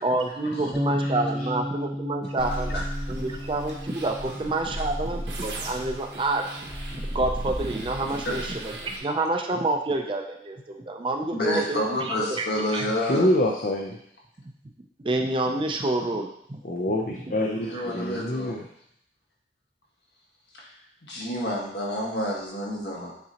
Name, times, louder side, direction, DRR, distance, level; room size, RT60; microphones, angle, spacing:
voice 1, 0.0-2.8 3.1-6.5 6.9-12.5 12.7-12.8 15.0-16.6 17.1-17.2, right 2 dB, 30° right, 3 dB, 0.5 m, -28 dB
sound 1, 0.7-7.0, equal, 10° left, 0.8 m, -34 dB
sound 2, 2.4-9.0, right 1 dB, 80° right, 1.3 m, -35 dB
voice 2, 11.3-13.3 17.6-18.5 20.6-20.7 21.0-23.1, left 1 dB, 65° left, -3 dB, 1.6 m, -29 dB
voice 3, 13.1-14.0 16.6-18.6, left 1 dB, 45° left, 1 dB, 0.5 m, -25 dB
8.3 x 4.0 x 2.9 m, 0.71 s
head